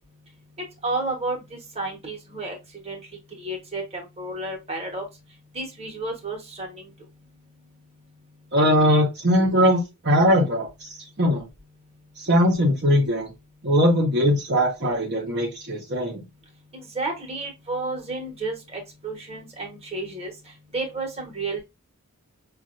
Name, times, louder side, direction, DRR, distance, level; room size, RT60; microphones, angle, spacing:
voice 1, 0.8-2.6 2.8-3.0 3.4-5.0 5.5-6.9 16.7-20.3 20.7-21.6, right 2 dB, 25° right, 1 dB, 1.2 m, -31 dB
voice 2, 8.5-10.9 11.2-11.5 12.2-13.3 13.6-16.2, equal, 50° right, -1 dB, 0.9 m, -20 dB
5.3 x 2.5 x 2.5 m, 0.24 s
head